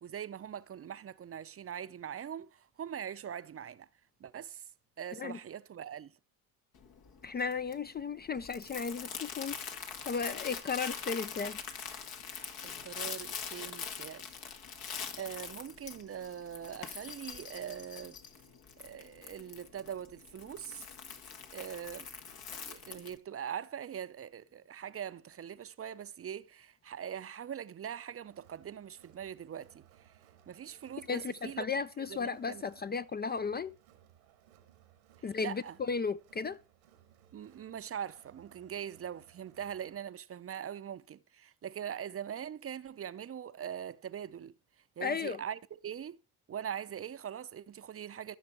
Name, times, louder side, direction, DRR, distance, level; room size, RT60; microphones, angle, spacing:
voice 1, 0.0-3.9 4.2-4.6 5.0-6.1 12.3-14.3 15.2-18.2 18.8-20.9 21.5-22.1 22.5-29.8 30.5-31.7 32.1-32.6 35.4-35.8 37.3-44.5 45.0-46.2 46.5-48.4, right 9 dB, 35° right, 0.6 m, -42 dB
Crumpling crinkling, 6.7-23.2, left 7 dB, 65° left, 1.6 m, -44 dB
voice 2, 7.2-9.6 10.1-11.6 31.1-33.7 35.2-36.6 45.0-45.4, left 5 dB, 25° left, 0.4 m, -35 dB
Crowd, 28.3-40.0, right 11 dB, 90° right, 1.5 m, -63 dB
14.0 x 6.0 x 4.5 m
hypercardioid pair, 55°, 40 cm